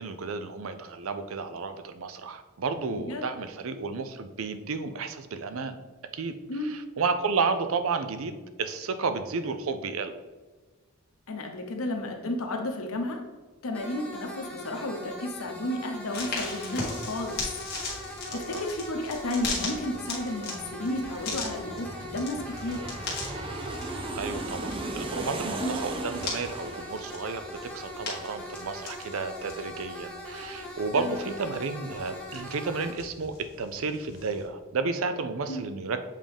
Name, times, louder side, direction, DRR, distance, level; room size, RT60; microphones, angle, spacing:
voice 1, 0.0-5.8 6.1-6.3 6.6-10.2 18.3-18.6 24.2-36.0, right 4 dB, 75° right, 9 dB, 0.5 m, -32 dB
voice 2, 2.9-3.2 6.5-6.7 11.3-13.2 13.6-17.4 18.0-22.8 25.6-25.8 31.0-31.1 35.5-35.6, left 1 dB, 85° left, 3 dB, 0.9 m, -32 dB
sound 1, 13.7-32.9, left 1 dB, 5° left, 0.7 m, -41 dB
sound 2, 16.1-34.5, left 3 dB, 45° left, 1.5 m, -40 dB
Aircraft, 17.3-28.6 28.9-29.0, right 2 dB, 25° right, 0.4 m, -39 dB
7.4 x 3.6 x 3.5 m, 1.3 s
head